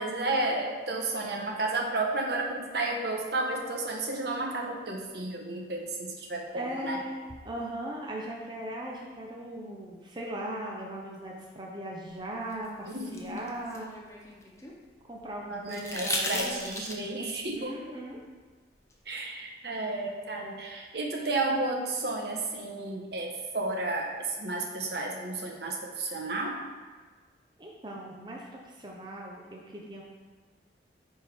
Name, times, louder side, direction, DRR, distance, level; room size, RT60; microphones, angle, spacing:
voice 1, 0.0-7.0 12.9-13.4 15.5-18.0 19.1-26.6, right 2 dB, 65° right, 1 dB, 1.0 m, -32 dB
voice 2, 6.5-7.2 7.4-13.9 15.1-16.7 17.5-18.2 27.6-30.0, right 1 dB, 25° right, -2 dB, 0.7 m, -39 dB
sound 1, 12.5-14.8 15.7-17.2 18.9-19.0, left 2 dB, 15° left, 0.7 m, -36 dB
9.1 x 4.5 x 3.5 m, 1.4 s
head